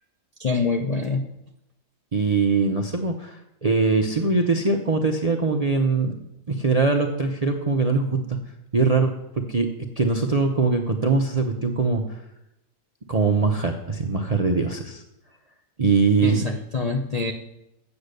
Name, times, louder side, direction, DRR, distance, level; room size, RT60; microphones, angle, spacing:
voice 1, 0.4-1.3 16.2-17.3, left 4 dB, 65° left, 4 dB, 0.3 m, -25 dB
voice 2, 2.1-6.1 6.5-8.4 8.7-9.1 9.5-9.7 10.0-12.0 13.1-15.0 15.8-16.5, right 4 dB, 50° right, 4 dB, 0.4 m, -22 dB
8.2 x 7.9 x 6.6 m, 0.89 s
omnidirectional pair, 1.7 m